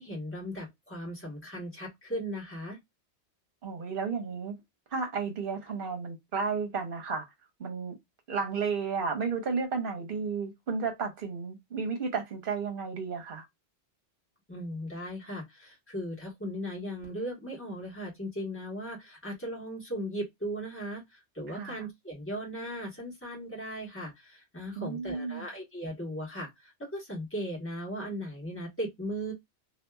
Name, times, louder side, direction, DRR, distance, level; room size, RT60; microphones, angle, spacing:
voice 1, 0.0-2.8 14.5-29.3, equal, 10° left, 1.2 m, -37 dB
voice 2, 3.6-4.6 4.9-7.3 7.6-8.0 8.3-13.4 21.5-21.9 24.8-25.5, right 5 dB, 55° right, 1.0 m, -33 dB
2.7 x 2.4 x 2.3 m
omnidirectional pair, 1.1 m